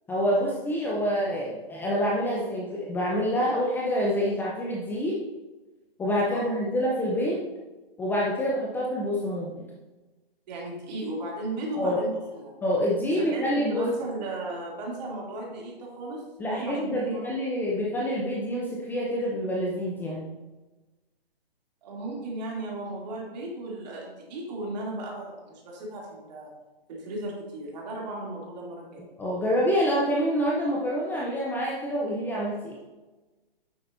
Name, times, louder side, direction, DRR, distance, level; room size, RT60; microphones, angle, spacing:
voice 1, 0.1-5.2 6.0-7.4 8.0-9.6 11.8-12.0 12.6-13.9 16.4-20.3 29.2-32.8, equal, 5° left, -4 dB, 0.6 m, -27 dB
voice 2, 10.5-12.6 13.2-17.7 21.8-26.5 26.9-29.1, right 2 dB, 45° right, -3 dB, 2.9 m, -36 dB
9.8 x 7.5 x 2.7 m, 1.2 s
hypercardioid pair, 135°, 30 cm